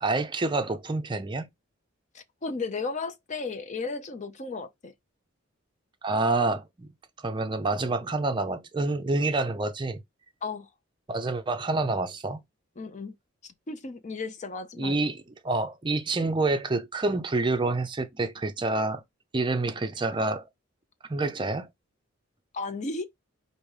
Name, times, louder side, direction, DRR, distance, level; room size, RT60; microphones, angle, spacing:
voice 1, 0.0-1.5 6.0-6.9 7.2-10.0 11.1-12.4 14.8-19.0 19.3-20.4 21.1-21.7, right 2 dB, 20° right, 0.5 m, -27 dB
voice 2, 2.1-4.9 10.4-10.7 12.8-13.1 13.4-15.0 22.5-23.0, left 3 dB, 35° left, 0.5 m, -34 dB
5.0 x 2.6 x 3.2 m
head